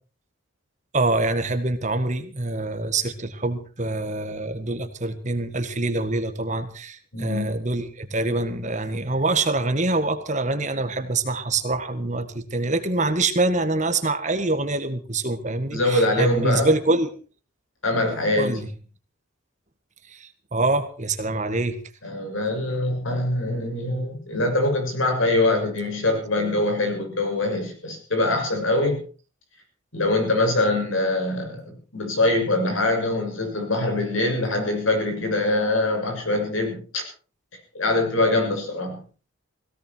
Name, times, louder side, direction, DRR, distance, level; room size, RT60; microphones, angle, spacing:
voice 1, 0.9-17.1 18.4-18.7 20.1-21.8, right 2 dB, 35° right, 9 dB, 1.7 m, -25 dB
voice 2, 7.1-7.5 15.7-16.7 17.8-18.6 22.0-29.0 29.9-31.6 31.9-37.0 37.7-39.0, left 2 dB, 85° left, 4 dB, 6.8 m, -23 dB
17.5 x 17.0 x 4.6 m, 0.39 s
head